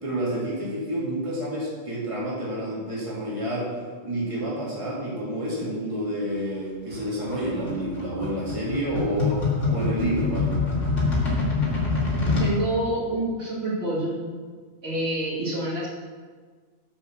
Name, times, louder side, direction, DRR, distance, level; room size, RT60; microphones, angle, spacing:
voice 1, 0.0-3.7 4.0-10.6, right 1 dB, 25° right, -6 dB, 2.2 m, -29 dB
sound 1, 6.9-12.5, left 3 dB, 90° left, 3.0 m, -25 dB
voice 2, 12.4-14.2 14.8-15.9, right 1 dB, 55° right, -6 dB, 2.5 m, -27 dB
7.6 x 7.3 x 6.5 m, 1.5 s
omnidirectional pair, 1.2 m